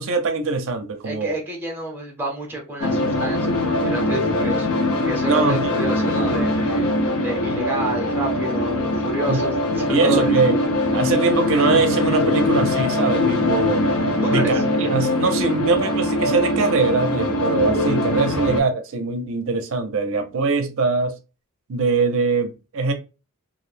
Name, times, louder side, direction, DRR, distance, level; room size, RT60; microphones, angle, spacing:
voice 1, 0.0-1.4 5.3-5.7 9.3-9.4 9.9-10.5 10.9-13.9 14.3-21.1 21.7-22.9, right 4 dB, 60° right, 0.5 m, -22 dB
voice 2, 1.0-4.7 4.9-6.9 7.2-10.3 14.2-14.6 18.3-18.4, right 1 dB, 10° right, 0.6 m, -29 dB
sound 1, 2.8-18.6, left 1 dB, 70° left, 0.6 m, -22 dB
2.5 x 2.0 x 3.1 m
head